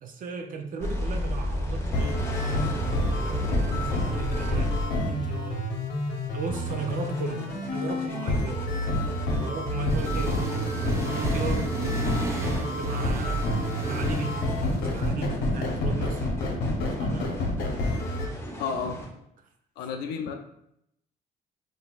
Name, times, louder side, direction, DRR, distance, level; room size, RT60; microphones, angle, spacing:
voice 1, 0.0-4.7 5.1-5.7 6.3-8.8 9.4-11.8 12.2-13.5 13.8-16.3 17.0-17.3, right 4 dB, 55° right, 4 dB, 0.6 m, -36 dB
sound 1, 0.8-4.8 6.5-19.1, equal, 15° left, 1.2 m, -35 dB
sound 2, 1.9-18.3, left 1 dB, 70° left, 0.9 m, -28 dB
Accelerating revving vroom, 9.9-15.1, right 3 dB, 15° right, 0.6 m, -34 dB
voice 2, 18.6-19.0 19.8-20.3, left 6 dB, 85° left, 5 dB, 0.4 m, -31 dB
5.7 x 2.7 x 2.4 m, 0.78 s
cardioid pair, 110°, 17 cm